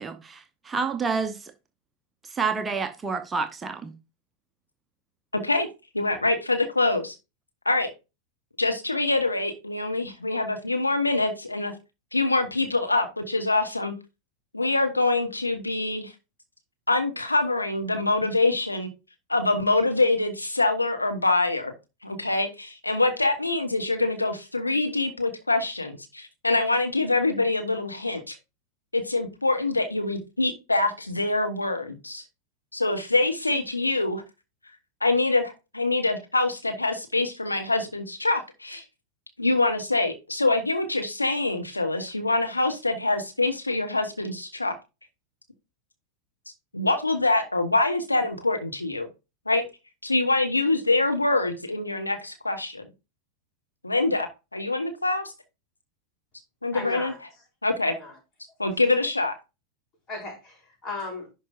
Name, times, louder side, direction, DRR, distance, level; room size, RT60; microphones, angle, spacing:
voice 1, 0.0-1.5 2.2-3.9, right 5 dB, 15° right, 0.7 m, -29 dB
voice 2, 5.3-5.7 5.9-7.1 7.6-7.9 8.6-11.7 12.1-13.9 14.5-16.1 16.9-18.9 19.3-21.7 22.0-28.3 28.9-32.2 32.7-34.2 35.0-38.8 39.4-44.7 46.7-49.1 49.5-49.6 50.0-52.8 53.8-55.2 56.6-57.1 57.6-57.9 58.6-59.3, left 2 dB, 85° left, 0.9 m, -25 dB
voice 3, 56.7-57.2 57.8-58.1 60.1-61.3, left 3 dB, 30° left, 4.7 m, -36 dB
11.0 x 4.8 x 2.5 m
figure-of-eight pair, 90°, 0 cm